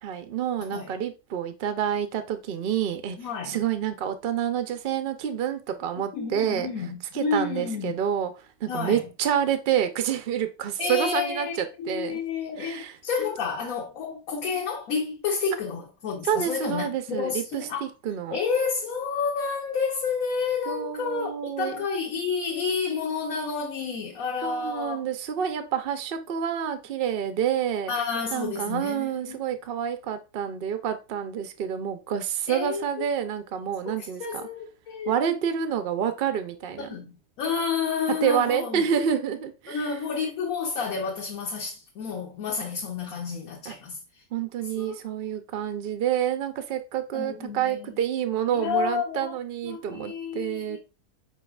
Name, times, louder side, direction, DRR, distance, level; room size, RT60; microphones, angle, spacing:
voice 1, 0.0-3.2 3.4-6.7 7.1-8.3 8.6-12.2 12.6-13.3 16.2-18.4 20.7-21.9 24.4-27.9 28.3-34.5 35.1-36.9 38.2-39.9 43.7-43.8 44.3-50.8, right 9 dB, 75° right, 0.5 m, -28 dB
voice 2, 3.2-3.6 6.1-8.0 8.7-9.0 10.8-17.9 18.3-25.0 27.9-29.4 32.5-32.8 33.9-34.0 34.2-35.2 36.9-38.9 39.7-44.0 44.8-45.0 47.1-48.0 48.5-49.4 49.6-50.8, left 5 dB, 65° left, 1.2 m, -30 dB
4.7 x 4.6 x 2.3 m
omnidirectional pair, 1.7 m